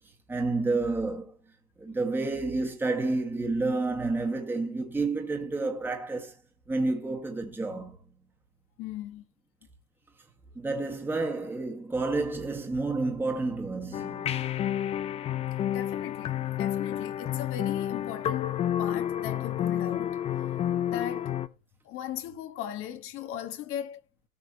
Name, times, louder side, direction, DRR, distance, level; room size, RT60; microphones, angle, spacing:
voice 1, 0.3-1.4 1.8-6.4 6.7-8.0 10.6-14.3, right 3 dB, 5° right, 1.8 m, -30 dB
voice 2, 8.8-9.2 15.7-20.3 20.9-21.3 21.8-24.0, left 11 dB, 30° left, 1.5 m, -38 dB
sound 1, 13.9-21.5, left 10 dB, 15° left, 0.6 m, -30 dB
18.0 x 6.1 x 2.9 m
hypercardioid pair, 120°, 41 cm